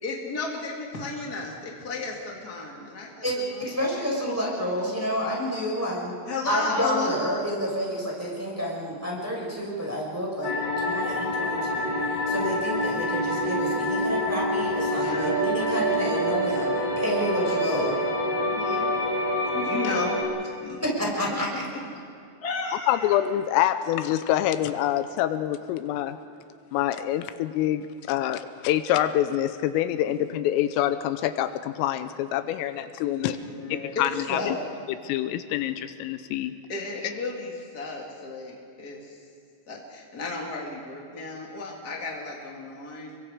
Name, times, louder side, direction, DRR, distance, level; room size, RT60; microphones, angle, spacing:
voice 1, 0.0-3.2 3.5-3.7 6.3-7.1 14.8-15.5 18.3-18.9 19.5-20.2 20.4-20.9 22.4-23.1 33.0-34.6 36.7-39.2 39.7-43.2, left 3 dB, 60° left, -1 dB, 1.0 m, -34 dB
voice 2, 3.2-6.1 6.4-17.9 21.0-21.6, equal, 5° right, -4 dB, 5.0 m, -29 dB
sound 1, 10.4-20.2, equal, 25° left, 4.6 m, -26 dB
voice 3, 22.9-26.2 26.7-33.4 33.7-34.6 35.0-36.5 37.0-37.1, left 12 dB, 85° left, 11 dB, 3.3 m, -26 dB
30.0 x 23.0 x 5.0 m, 2.4 s
omnidirectional pair, 5.9 m